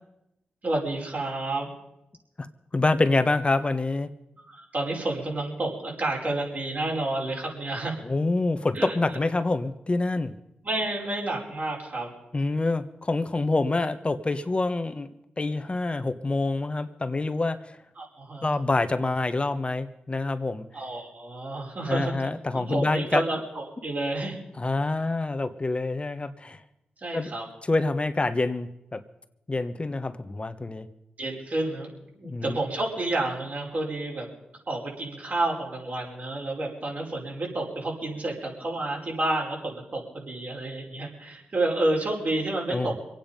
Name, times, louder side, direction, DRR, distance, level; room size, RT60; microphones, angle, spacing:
voice 1, 0.6-1.7 4.5-8.0 8.7-8.9 10.6-12.1 17.9-18.6 20.7-22.2 22.5-24.4 27.0-27.5 31.2-34.3 34.7-43.0, right 2 dB, 55° right, -1 dB, 5.1 m, -30 dB
voice 2, 2.7-4.1 8.0-10.3 12.3-15.1 15.4-17.8 18.4-20.7 21.9-23.2 24.6-26.6 27.1-27.3 27.7-29.0 29.5-30.9 32.2-32.6 42.7-42.9, left 2 dB, 30° left, 10 dB, 1.1 m, -26 dB
24.0 x 9.1 x 5.4 m, 0.85 s
cardioid pair, 50°, 3 cm